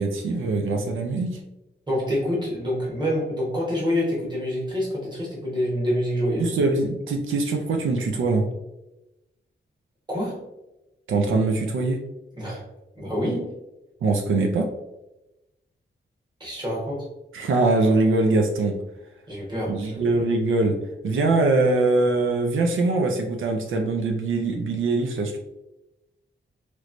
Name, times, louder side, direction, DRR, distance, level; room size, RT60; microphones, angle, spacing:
voice 1, 0.0-1.4 6.4-8.4 11.1-12.0 14.0-14.7 17.3-18.8 19.7-20.8 21.0-25.4, right 3 dB, 90° right, 3 dB, 0.5 m, -22 dB
voice 2, 1.9-6.5 10.1-10.4 12.4-12.6 12.9-13.5 16.4-17.1 19.3-20.2, equal, 20° right, -5 dB, 1.2 m, -27 dB
3.1 x 3.1 x 2.5 m, 0.96 s
wide cardioid pair, 145°, 20 cm